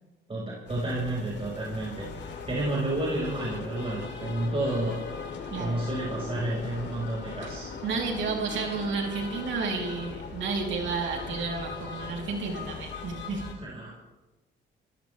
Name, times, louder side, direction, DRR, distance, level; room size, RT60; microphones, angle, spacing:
voice 1, 0.3-2.1 2.5-5.0 5.6-7.7 13.5-14.1, right 1 dB, 30° right, -4 dB, 5.1 m, -30 dB
sound 1, 0.7-13.5, left 5 dB, 65° left, 2.9 m, -39 dB
voice 2, 5.5-5.8 7.8-13.4, right 4 dB, 70° right, 0 dB, 3.3 m, -31 dB
27.5 x 15.0 x 3.4 m, 1.1 s
cardioid pair, 90°, 20 cm